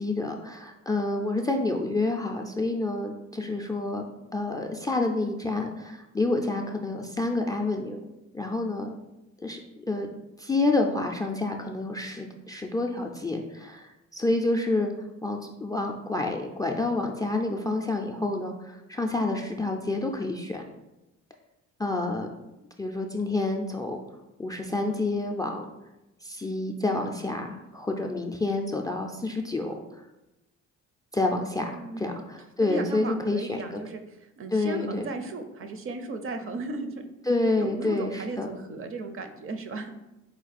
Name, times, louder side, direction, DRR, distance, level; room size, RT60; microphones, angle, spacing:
voice 1, 0.0-4.0 4.3-8.0 8.3-9.0 9.4-9.6 9.9-10.1 10.4-14.9 15.2-20.6 21.8-22.3 22.8-24.0 24.4-25.7 26.2-29.7 31.1-31.7 32.0-33.8 34.5-35.1 37.3-38.5, left 2 dB, 15° left, 4 dB, 0.3 m, -28 dB
voice 2, 31.8-32.1 32.6-37.0 37.6-39.9, right 2 dB, 45° right, 7 dB, 0.5 m, -35 dB
4.3 x 2.3 x 4.0 m, 0.96 s
cardioid pair, 90°, 30 cm